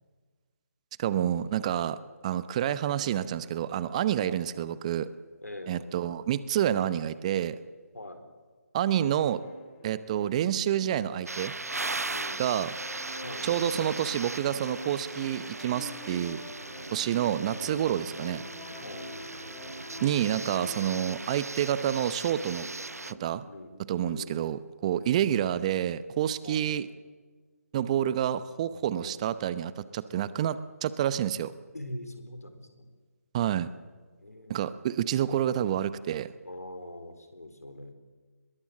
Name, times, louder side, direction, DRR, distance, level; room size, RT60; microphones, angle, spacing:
voice 1, 1.0-2.0 2.2-5.1 5.7-7.6 8.7-9.4 9.8-11.5 12.4-12.7 13.4-16.4 16.9-18.4 20.0-22.7 23.1-23.4 23.9-26.9 27.7-31.5 33.3-33.7 34.5-36.3, right 10 dB, 25° right, 15 dB, 0.7 m, -28 dB
voice 2, 5.4-6.0 7.9-8.2 12.1-12.4 13.2-13.5 17.0-17.3 17.9-18.1 18.8-19.1 23.4-24.4 24.9-25.3 26.4-26.6 28.9-29.2 31.7-32.9 34.2-34.7 36.4-37.9, left 1 dB, 80° left, 7 dB, 4.1 m, -43 dB
sound 1, 9.2-23.2, left 2 dB, 25° left, 2.6 m, -46 dB
sound 2, 11.3-23.1, right 3 dB, 75° right, 0.9 m, -38 dB
23.0 x 21.5 x 7.6 m, 1.4 s
figure-of-eight pair, 145°, 8 cm